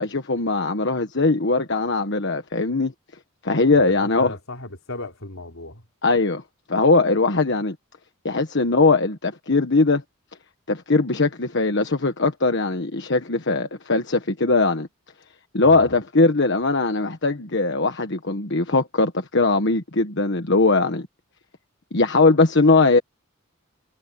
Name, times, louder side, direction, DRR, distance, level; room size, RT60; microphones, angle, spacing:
voice 1, 0.0-2.9 3.4-4.3 6.0-6.4 6.7-7.7 8.2-10.0 10.7-14.9 15.5-21.1 21.9-23.0, left 3 dB, 55° left, 1.4 m, -20 dB
voice 2, 3.9-5.8 15.6-15.9, left 3 dB, 70° left, 3.8 m, -35 dB
head